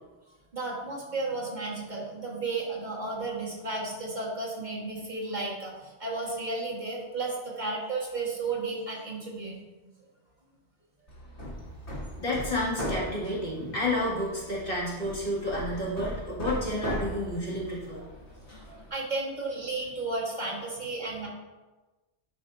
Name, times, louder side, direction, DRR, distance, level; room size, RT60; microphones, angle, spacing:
voice 1, 0.5-9.6 18.9-21.3, right 3 dB, 40° right, -5 dB, 1.5 m, -33 dB
Hammer, 11.1-18.9, equal, 70° left, 1.7 m, -38 dB
voice 2, 12.2-18.0, left 1 dB, 50° left, -8 dB, 2.3 m, -30 dB
10.5 x 5.0 x 2.6 m, 1.2 s
omnidirectional pair, 1.2 m